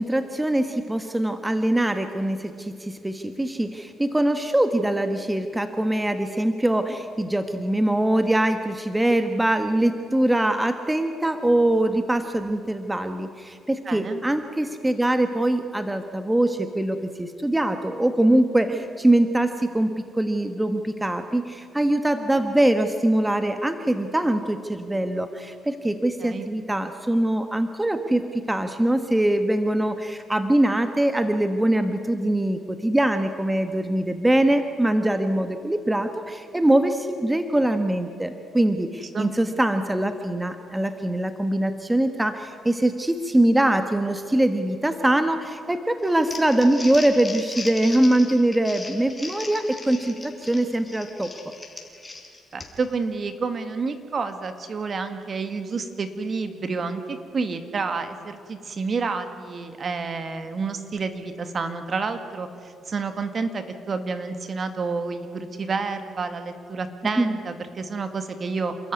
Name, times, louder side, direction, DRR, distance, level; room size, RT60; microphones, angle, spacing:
voice 1, 0.0-51.3 67.2-67.3, right 1 dB, 10° right, 8 dB, 1.3 m, -23 dB
voice 2, 13.9-14.2 26.2-26.5 39.1-39.3 52.5-68.9, right 4 dB, 45° right, 9 dB, 2.1 m, -29 dB
Crumpling crinkling, 46.0-52.9, left 3 dB, 20° left, 4.3 m, -38 dB
28.5 x 13.5 x 9.6 m, 2.4 s
cardioid pair, 90°, 0 cm